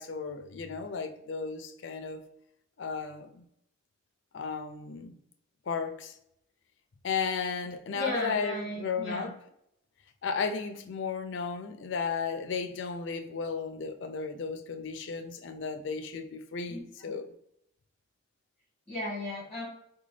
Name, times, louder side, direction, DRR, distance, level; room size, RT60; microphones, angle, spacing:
voice 1, 0.0-2.2 2.8-3.5 4.3-5.2 5.7-6.1 7.0-9.3 10.2-17.3, left 5 dB, 55° left, 0.4 m, -34 dB
voice 2, 7.9-9.3 16.7-16.8 18.9-19.7, left 1 dB, ahead, 1.4 m, -35 dB
3.8 x 2.3 x 3.1 m
head